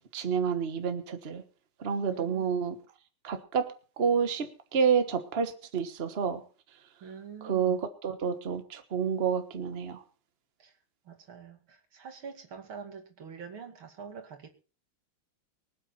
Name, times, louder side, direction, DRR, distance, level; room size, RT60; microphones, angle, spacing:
voice 1, 0.1-1.4 1.8-2.8 3.2-6.4 7.4-10.0, right 6 dB, 35° right, 1.3 m, -29 dB
voice 2, 2.1-2.4 7.0-7.8 10.6-10.7 11.0-14.5, right 6 dB, 85° right, 3.1 m, -45 dB
24.0 x 8.7 x 4.3 m
omnidirectional pair, 2.2 m